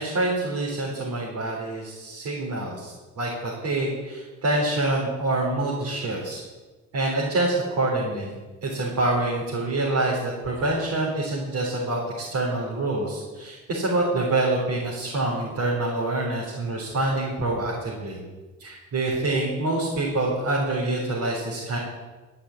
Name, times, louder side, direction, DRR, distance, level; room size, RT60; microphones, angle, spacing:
voice 1, 0.0-6.4 6.9-8.3 8.6-18.2 18.6-21.8, right 2 dB, 80° right, -4 dB, 4.0 m, -26 dB
12.5 x 8.9 x 8.5 m, 1.3 s
cardioid pair, 90°, 30 cm